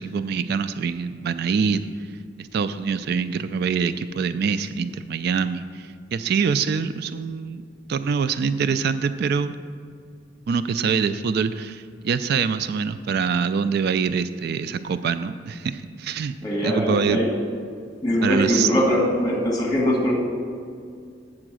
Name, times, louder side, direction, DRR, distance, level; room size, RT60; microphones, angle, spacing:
voice 1, 0.0-1.8 2.4-7.6 7.9-9.6 10.5-16.3 16.6-17.2 18.2-18.8, right 6 dB, 60° right, 12 dB, 0.3 m, -24 dB
voice 2, 16.4-17.4 18.0-20.1, equal, 20° left, -2 dB, 2.0 m, -22 dB
7.8 x 7.4 x 6.1 m, 2.3 s
head